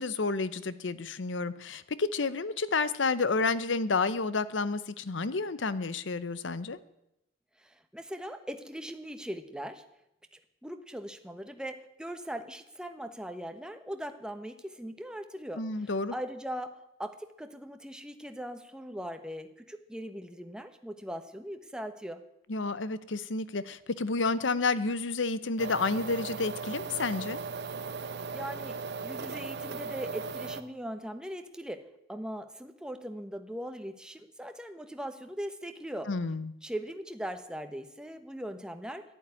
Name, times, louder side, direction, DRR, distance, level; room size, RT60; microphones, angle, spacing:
voice 1, 0.0-6.8 15.6-16.1 22.5-27.4 36.1-36.5, left 3 dB, 70° left, 16 dB, 0.8 m, -30 dB
voice 2, 7.6-9.8 10.3-15.6 16.1-22.2 28.0-28.8 29.0-31.8 32.1-36.1 36.6-39.0, equal, 5° right, 7 dB, 1.0 m, -40 dB
sound 1, 25.6-30.6, right 4 dB, 60° right, 0.9 m, -37 dB
11.5 x 10.5 x 9.7 m, 0.85 s
head